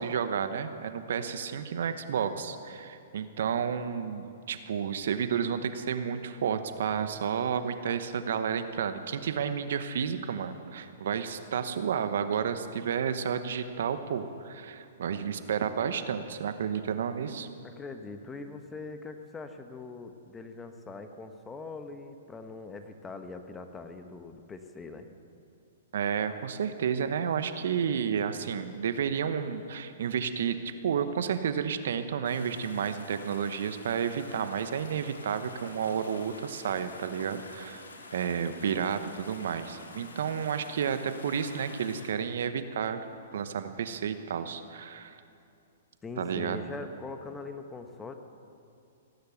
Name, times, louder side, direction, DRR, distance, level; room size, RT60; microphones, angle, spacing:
voice 1, 0.0-17.5 25.9-43.1 43.3-45.2 46.2-46.6, right 7 dB, 70° right, 10 dB, 1.0 m, -31 dB
voice 2, 17.6-25.1 46.0-48.1, left 3 dB, 15° left, 7 dB, 1.1 m, -42 dB
sound 1, 32.3-42.1, left 3 dB, 85° left, 2.2 m, -48 dB
17.5 x 10.5 x 7.0 m, 2.5 s
hypercardioid pair, 125°, 0 cm